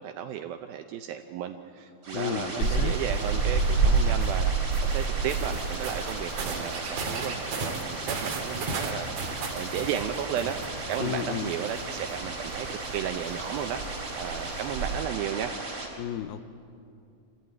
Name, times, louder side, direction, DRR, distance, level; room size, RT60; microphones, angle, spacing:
voice 1, 0.0-4.5 4.8-9.2 9.5-15.6, right 9 dB, 85° right, 6 dB, 2.1 m, -34 dB
sound 1, 2.0-15.9, right 2 dB, 25° right, 3.7 m, -37 dB
voice 2, 2.1-3.0 11.0-11.5 16.0-16.4, left 10 dB, 80° left, 11 dB, 2.6 m, -32 dB
sound 2, 2.6-15.0, right 4 dB, 50° right, 2.4 m, -30 dB
26.5 x 15.0 x 8.9 m, 2.5 s
omnidirectional pair, 5.2 m